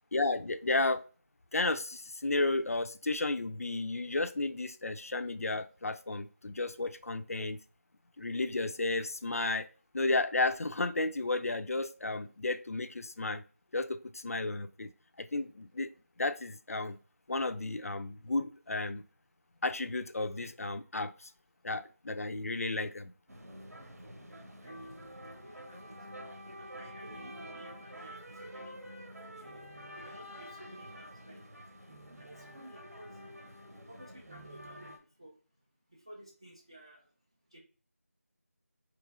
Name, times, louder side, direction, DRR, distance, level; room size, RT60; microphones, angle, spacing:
voice 1, 0.1-1.0 1.5-7.6 8.2-9.7 9.9-13.4 13.7-14.9 15.2-15.9 16.2-17.0 17.3-19.0 19.6-21.3 21.6-23.1, left 2 dB, 65° left, 0.4 m, -33 dB
sound 1, 23.3-35.0, equal, 75° right, 0.9 m, -48 dB
voice 2, 24.6-26.0 26.6-28.8 29.4-29.7 30.0-31.4 32.2-33.1 33.9-35.3 35.9-37.1 37.5-37.6, right 1 dB, 20° right, 0.4 m, -54 dB
3.1 x 3.0 x 2.4 m
figure-of-eight pair, 170°, 8 cm